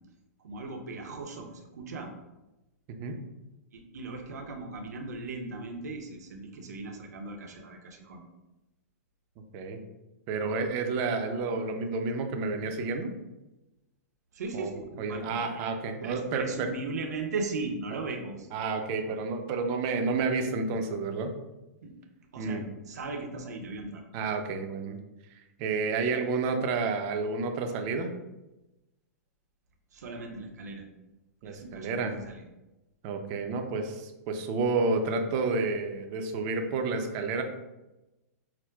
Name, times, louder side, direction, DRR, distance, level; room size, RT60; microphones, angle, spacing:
voice 1, 0.4-2.1 3.7-8.2 14.3-15.7 16.0-18.5 21.8-21.9 22.3-24.0 29.9-30.9 31.4-32.4, right 3 dB, 80° right, 3 dB, 0.7 m, -38 dB
voice 2, 10.3-13.1 14.5-14.7 15.0-16.7 18.5-21.3 22.4-22.6 24.1-25.0 25.6-28.1 31.4-32.1 33.0-37.4, right 4 dB, 40° right, 5 dB, 0.5 m, -30 dB
5.8 x 2.1 x 2.3 m, 1.0 s
hypercardioid pair, 135°, 9 cm